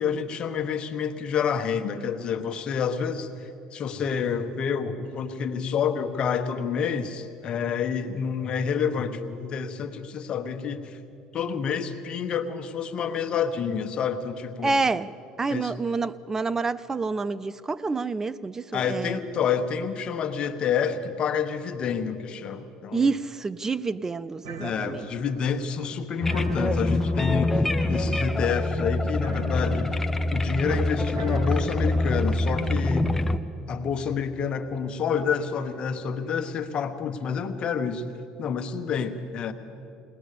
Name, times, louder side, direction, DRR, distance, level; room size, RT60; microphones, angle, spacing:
voice 1, 0.0-11.0 11.3-14.8 15.5-15.7 18.7-23.1 24.6-30.0 30.3-33.2 33.7-38.1 38.4-39.5, left 6 dB, 50° left, 9 dB, 1.4 m, -28 dB
voice 2, 14.6-15.1 15.4-19.2 22.9-25.1, right 4 dB, 25° right, 18 dB, 0.6 m, -28 dB
sound 1, 24.4-32.8, right 2 dB, 75° right, 2.6 m, -40 dB
sound 2, 26.2-33.4, left 2 dB, 15° left, 0.9 m, -25 dB
21.0 x 19.0 x 6.9 m, 2.7 s
supercardioid pair, 85°, 2 cm